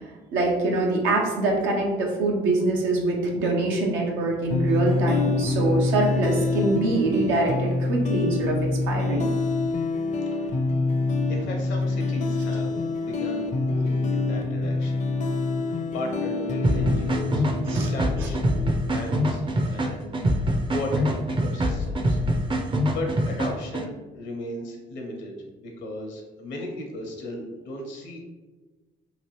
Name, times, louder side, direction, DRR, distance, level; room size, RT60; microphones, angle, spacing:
voice 1, 0.3-9.3 17.7-17.9 18.2-18.3, right 2 dB, 90° right, -1 dB, 0.7 m, -24 dB
sound 1, 4.5-19.5, left 3 dB, 40° left, 0.4 m, -26 dB
voice 2, 11.3-15.1 15.7-20.4 20.7-22.2 22.6-28.2, left 1 dB, 75° left, 1 dB, 0.8 m, -36 dB
sound 2, 16.6-23.8, equal, 25° right, 0.4 m, -25 dB
2.9 x 2.4 x 3.0 m, 1.2 s
supercardioid pair, 70°, 19 cm